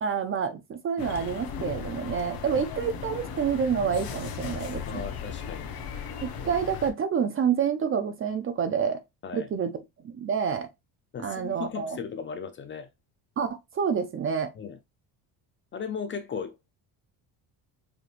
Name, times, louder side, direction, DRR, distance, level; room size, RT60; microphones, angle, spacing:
voice 1, 0.0-5.1 6.2-9.0 9.3-10.7 11.2-12.0 13.4-14.5, right 7 dB, 30° right, 0.4 m, -28 dB
sound 1, 1.0-6.9, left 7 dB, 55° left, 0.9 m, -37 dB
voice 2, 4.9-5.7 9.2-9.5 11.1-12.9 14.6-14.8 15.7-16.7, left 6 dB, 30° left, 0.4 m, -36 dB
4.9 x 3.0 x 2.4 m
cardioid pair, 140°, 42 cm